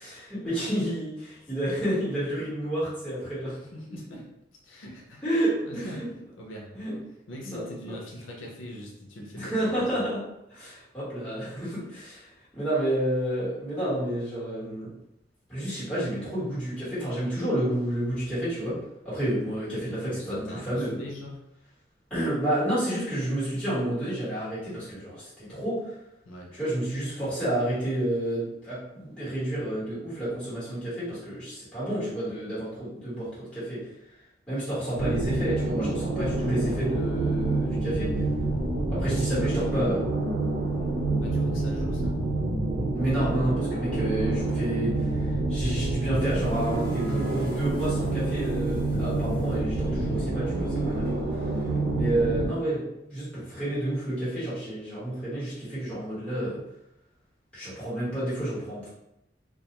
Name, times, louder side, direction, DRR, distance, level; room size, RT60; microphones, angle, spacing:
voice 1, 0.0-3.5 5.2-6.1 6.7-6.9 7.4-7.9 9.3-10.2 10.5-12.2 12.5-14.9 15.5-18.7 19.0-21.0 22.1-25.8 26.5-33.8 34.5-38.1 38.9-40.1 42.9-44.9 45.5-51.2 51.9-56.6 57.5-58.9, right 1 dB, 5° left, -11 dB, 1.2 m, -30 dB
voice 2, 3.5-4.3 4.6-6.1 6.4-7.0 7.3-10.0 20.0-21.4 26.2-26.5 39.2-40.1 41.2-42.2, equal, 90° left, -1 dB, 0.6 m, -42 dB
sound 1, 34.9-52.5, right 2 dB, 80° right, 0.7 m, -28 dB
sound 2, 37.1-42.5, left 1 dB, 40° right, 1.0 m, -45 dB
sound 3, 46.3-52.6, equal, 50° left, 0.7 m, -45 dB
2.3 x 2.2 x 2.9 m, 0.85 s
head